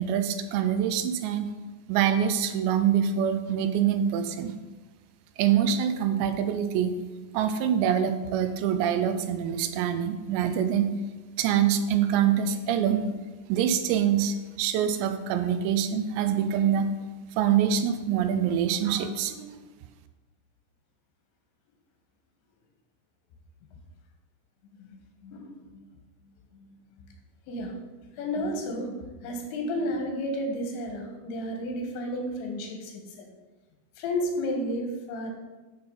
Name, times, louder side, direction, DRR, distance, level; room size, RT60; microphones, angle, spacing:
voice 1, 0.0-1.5 1.9-4.5 5.4-7.0 7.3-10.9 11.4-13.1 13.5-16.9 17.4-19.5, right 9 dB, 85° right, 9 dB, 2.8 m, -25 dB
voice 2, 25.2-25.8 27.5-27.8 28.1-33.3 34.0-35.3, equal, 85° left, 3 dB, 3.6 m, -32 dB
11.5 x 5.7 x 3.9 m, 1.2 s
omnidirectional pair, 5.1 m